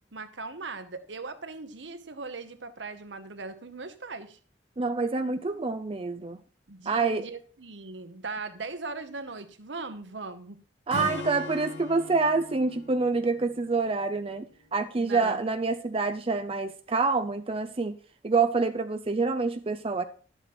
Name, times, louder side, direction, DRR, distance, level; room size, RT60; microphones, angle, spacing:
voice 1, 0.1-4.4 6.7-10.6 11.0-11.2 15.0-15.4, right 3 dB, 80° right, 10 dB, 1.1 m, -39 dB
voice 2, 4.8-6.4 6.9-7.3 10.9-14.5 14.7-18.0 18.2-20.0, right 4 dB, 30° right, 8 dB, 0.5 m, -27 dB
Acoustic guitar / Strum, 10.9-14.4, left 2 dB, 85° left, 3.9 m, -40 dB
11.5 x 8.0 x 4.3 m, 0.39 s
head